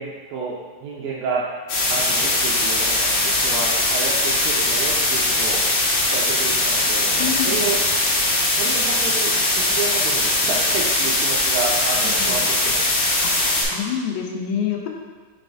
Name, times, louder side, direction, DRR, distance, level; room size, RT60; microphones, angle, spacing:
voice 1, 0.0-1.5 1.9-5.6 6.1-7.8 8.5-12.9, right 4 dB, 90° right, -5 dB, 2.1 m, -30 dB
sound 1, 1.7-13.6, left 2 dB, 65° left, 2.8 m, -20 dB
voice 2, 7.2-7.7 12.1-12.4 13.2-14.9, left 8 dB, 80° left, 1 dB, 2.7 m, -27 dB
6.6 x 6.0 x 2.6 m, 1.4 s
omnidirectional pair, 4.9 m